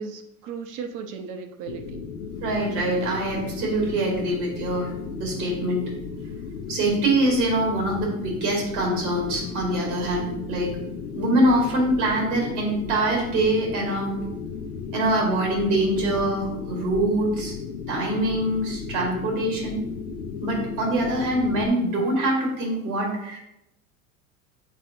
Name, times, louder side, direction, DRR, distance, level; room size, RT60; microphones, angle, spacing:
voice 1, 0.0-2.1, right 5 dB, 50° right, 6 dB, 1.0 m, -36 dB
sound 1, 1.7-21.7, left 5 dB, 85° left, 0.7 m, -35 dB
voice 2, 2.4-4.9 5.2-5.8 6.7-10.7 11.2-14.2 14.9-17.6 17.9-19.8 20.4-23.4, right 1 dB, 70° right, -1 dB, 2.3 m, -24 dB
8.3 x 4.1 x 2.9 m, 0.85 s
hypercardioid pair, 85°, 42 cm